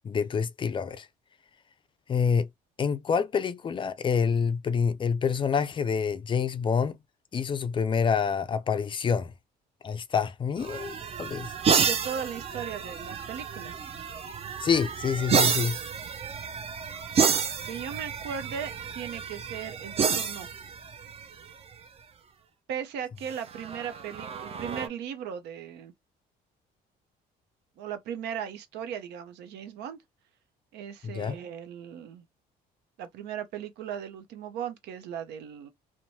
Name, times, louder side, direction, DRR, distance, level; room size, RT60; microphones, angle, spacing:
voice 1, 0.0-1.1 2.1-2.5 2.8-6.9 7.3-9.3 9.8-11.5 14.6-15.8 31.0-31.4, left 6 dB, 30° left, 0.3 m, -27 dB
sound 1, 10.6-21.7 23.3-24.9, right 6 dB, 35° right, 0.5 m, -30 dB
voice 2, 11.8-13.8 17.6-20.5 22.7-25.9 27.8-30.0 30.7-32.2 33.0-35.7, right 8 dB, 80° right, 0.7 m, -37 dB
2.9 x 2.1 x 2.7 m
cardioid pair, 110°, 17 cm